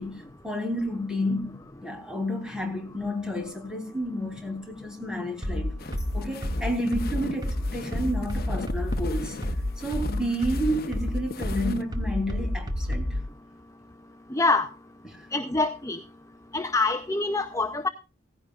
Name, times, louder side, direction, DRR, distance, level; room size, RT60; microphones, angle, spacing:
voice 1, 0.0-1.5 1.8-5.7 6.1-9.4 9.8-13.2 15.0-15.3, equal, 5° right, 3.4 m, -30 dB
sound 1, 5.4-13.3, left 1 dB, 20° right, 1.6 m, -29 dB
Footsteps in snow, 5.8-11.8, left 3 dB, 50° left, 0.9 m, -40 dB
voice 2, 14.3-14.7 15.3-16.0 16.5-17.9, left 3 dB, 15° left, 0.6 m, -25 dB
17.0 x 15.5 x 2.4 m
head